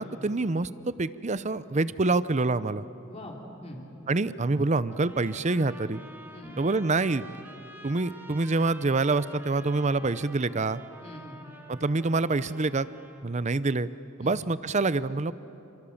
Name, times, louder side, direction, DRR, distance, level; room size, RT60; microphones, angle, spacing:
voice 1, 0.0-2.8 4.1-6.0 6.6-7.3 7.8-10.8 11.7-12.9 13.2-13.9 14.2-15.3, right 3 dB, 35° right, 15 dB, 0.6 m, -26 dB
voice 2, 3.1-3.8 6.3-6.7 11.0-11.4 14.2-14.5, equal, 30° left, 0 dB, 3.3 m, -43 dB
sound 1, 4.9-13.3, right 1 dB, 10° right, 2.3 m, -49 dB
29.5 x 26.5 x 7.2 m, 2.9 s
head